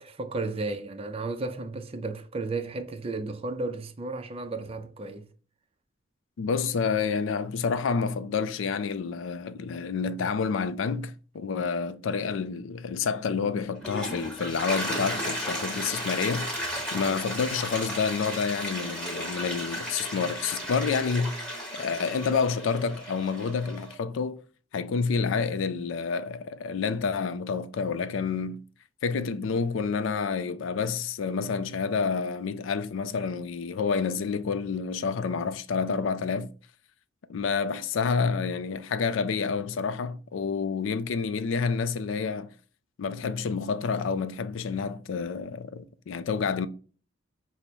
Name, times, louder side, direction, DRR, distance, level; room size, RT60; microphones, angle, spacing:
voice 1, 0.0-5.3, right 3 dB, 30° right, 0.5 m, -33 dB
voice 2, 6.4-16.5 16.9-21.4 21.7-24.4 24.7-28.6 29.0-36.5 37.3-42.5 43.0-46.7, left 5 dB, 70° left, 0.4 m, -29 dB
Toilet flush, 13.6-23.9, equal, 5° left, 1.1 m, -34 dB
5.2 x 2.1 x 4.4 m
head